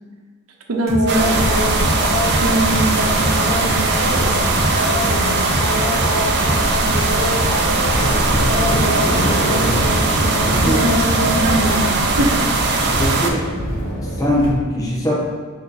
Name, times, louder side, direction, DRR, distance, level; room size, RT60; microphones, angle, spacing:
voice 1, 0.7-1.9 2.4-3.8 4.1-5.5 6.1-8.0 8.6-9.3 10.5-12.4, right 1 dB, 90° right, 1 dB, 0.8 m, -25 dB
sound 1, 0.9-11.9, equal, 45° left, 1.3 m, -23 dB
sound 2, 1.1-13.3, right 3 dB, 50° right, 0.7 m, -20 dB
sound 3, 7.9-14.5, equal, 65° left, 1.3 m, -25 dB
voice 2, 10.5-10.8 13.0-13.5 14.2-15.1, equal, 15° left, -4 dB, 1.2 m, -21 dB
6.8 x 3.4 x 4.1 m, 1.5 s
head